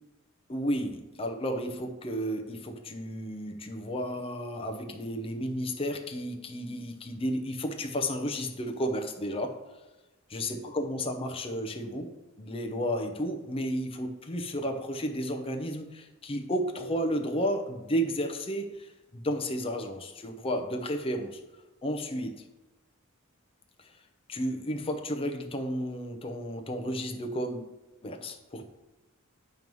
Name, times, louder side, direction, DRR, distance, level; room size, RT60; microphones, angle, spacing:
voice 1, 0.5-9.6 10.3-12.1 12.4-21.4 21.8-22.4 24.3-27.6 28.0-28.7, equal, 25° left, 4 dB, 0.7 m, -32 dB
9.2 x 3.1 x 5.3 m, 1.1 s
head